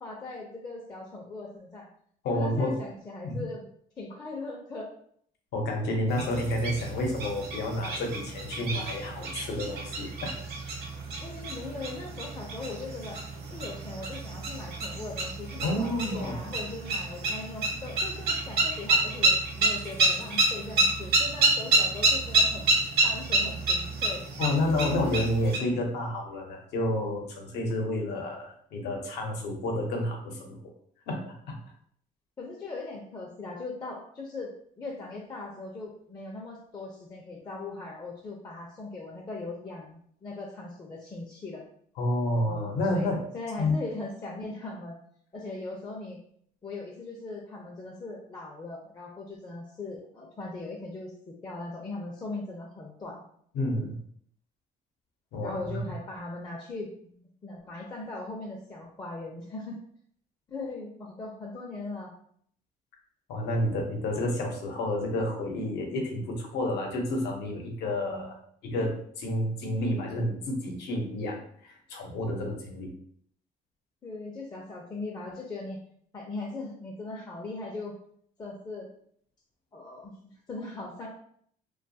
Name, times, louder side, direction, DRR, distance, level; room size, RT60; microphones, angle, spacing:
voice 1, 0.0-1.9 2.3-3.7 4.0-4.9 11.2-13.2 13.5-22.8 23.0-24.2 32.4-34.5 34.8-41.6 42.4-42.6 42.9-45.0 45.3-46.2 46.6-53.2 55.3-59.8 60.5-62.1 74.0-75.8 76.1-77.9 78.4-78.9 79.7-81.1, left 3 dB, 25° left, -2 dB, 0.4 m, -39 dB
voice 2, 2.2-2.8 3.2-3.4 5.5-10.3 15.6-16.4 24.4-30.6 31.1-31.6 42.0-43.2 43.6-43.8 53.5-54.0 55.3-55.8 63.3-68.4 68.6-68.9 69.2-72.9, left 1 dB, 80° left, 1 dB, 0.7 m, -30 dB
sound 1, 6.1-25.6, right 2 dB, 65° right, 0.8 m, -29 dB
2.5 x 2.3 x 2.6 m, 0.64 s
cardioid pair, 110°, 17 cm